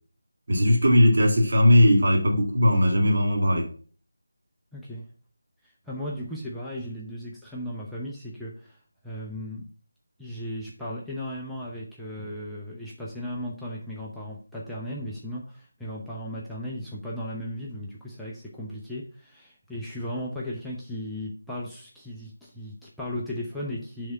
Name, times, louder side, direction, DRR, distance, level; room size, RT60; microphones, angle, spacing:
voice 1, 0.5-3.7, left 1 dB, 50° right, 0 dB, 2.1 m, -19 dB
voice 2, 4.7-5.1 5.6-9.7 10.2-24.1, equal, ahead, -8 dB, 0.7 m, -36 dB
6.2 x 3.5 x 5.6 m, 0.43 s
figure-of-eight pair, 165°, 0 cm